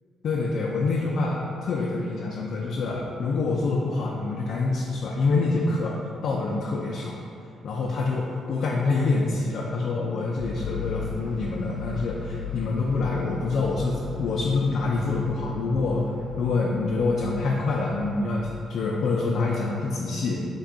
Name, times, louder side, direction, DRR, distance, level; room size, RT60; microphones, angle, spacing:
voice 1, 0.2-6.0 6.2-7.2 7.6-16.1 16.4-20.4, left 3 dB, 65° left, -3 dB, 0.3 m, -26 dB
sound 1, 10.4-18.5, left 4 dB, 10° right, 0.9 m, -37 dB
3.4 x 2.2 x 3.8 m, 2.6 s
cardioid pair, 90°, 0 cm